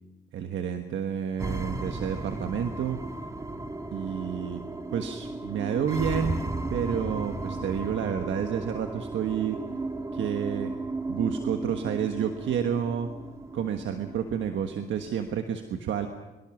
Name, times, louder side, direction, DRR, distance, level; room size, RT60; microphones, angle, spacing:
voice 1, 0.3-3.0 3.9-4.6 4.9-6.4 6.7-9.6 10.1-10.7 11.1-13.1 13.5-16.1, right 8 dB, 70° right, 6 dB, 1.5 m, -30 dB
sound 1, 1.4-15.4, right 2 dB, 15° right, 1.6 m, -35 dB
23.5 x 23.5 x 6.1 m, 1.1 s
cardioid pair, 90°, 20 cm